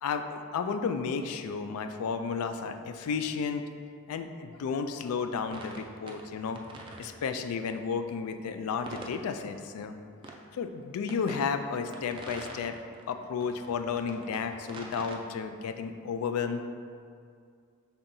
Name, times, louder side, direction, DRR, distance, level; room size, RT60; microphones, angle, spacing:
voice 1, 0.0-3.6 4.1-6.6 7.0-10.0 10.5-12.8 13.1-16.6, left 5 dB, 85° left, 9 dB, 0.3 m, -32 dB
sound 1, 5.5-6.3 6.6-7.1 8.9-9.2 10.2-10.3 11.1-11.5 11.9-13.0 13.4-15.2, right 2 dB, 25° right, 0.3 m, -44 dB
5.6 x 3.4 x 2.6 m, 2.2 s
head